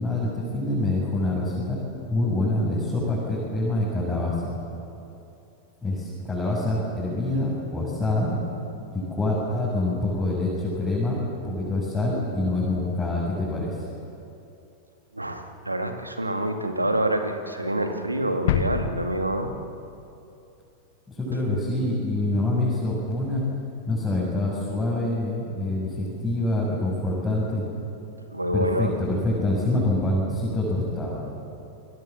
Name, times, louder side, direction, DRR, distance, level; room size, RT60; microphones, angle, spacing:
voice 1, 0.0-1.8 2.1-4.5 5.8-8.4 8.9-13.9 21.1-23.4 23.9-27.6 28.5-31.2, left 2 dB, 10° left, -6 dB, 7.1 m, -26 dB
voice 2, 15.1-19.5 28.3-28.9, right 1 dB, 85° right, 6 dB, 2.0 m, -27 dB
sound 1, 18.5-20.3 20.6-20.7, left 9 dB, 55° left, 1.3 m, -29 dB
28.5 x 21.5 x 7.4 m, 2.7 s
figure-of-eight pair, 90°, 0 cm